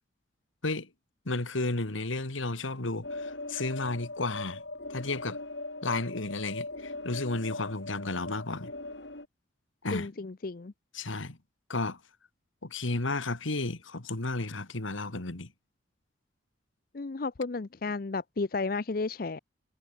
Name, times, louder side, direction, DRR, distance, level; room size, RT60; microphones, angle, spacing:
voice 1, 1.3-4.6 4.9-5.4 5.8-8.7 9.8-10.1 10.9-11.4 11.7-12.0 12.6-15.5, left 2 dB, 90° left, 2.0 m, -33 dB
sound 1, 3.0-9.3, left 2 dB, 65° left, 4.6 m, -40 dB
voice 2, 9.9-10.7 16.9-19.4, left 3 dB, 50° left, 0.6 m, -33 dB
head